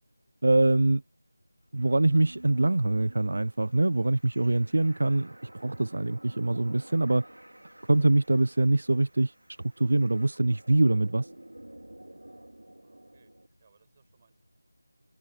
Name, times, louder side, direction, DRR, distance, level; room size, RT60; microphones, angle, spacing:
voice 1, 0.4-1.0 1.7-5.4 5.6-7.2 7.9-11.3, right 2 dB, 60° right, 0.3 m, -24 dB
sound 1, 1.7-13.5, right 1 dB, 85° right, 2.9 m, -51 dB
voice 2, 12.8-14.3, right 5 dB, 30° right, 6.5 m, -66 dB
figure-of-eight pair, 170°, 0 cm